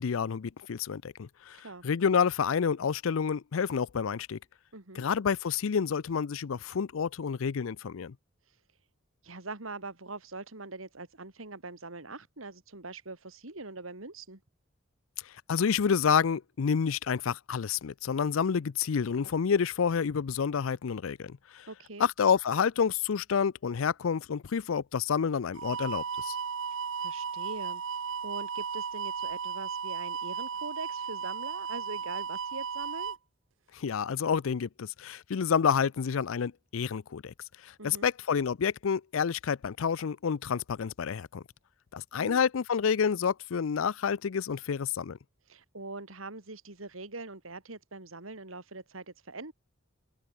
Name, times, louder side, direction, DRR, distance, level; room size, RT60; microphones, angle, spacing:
voice 1, 0.0-4.4 4.9-8.1 15.2-21.7 22.0-26.4 33.7-37.3 37.6-41.4 41.9-45.2, left 6 dB, 85° left, 0.5 m, -29 dB
voice 2, 1.5-1.8 4.7-5.0 8.5-8.6 9.2-14.4 21.7-22.1 26.7-33.2 37.8-38.1 42.1-42.4 45.5-49.5, right 3 dB, 90° right, 3.1 m, -43 dB
sound 1, 25.6-33.2, right 6 dB, 75° right, 0.7 m, -35 dB
head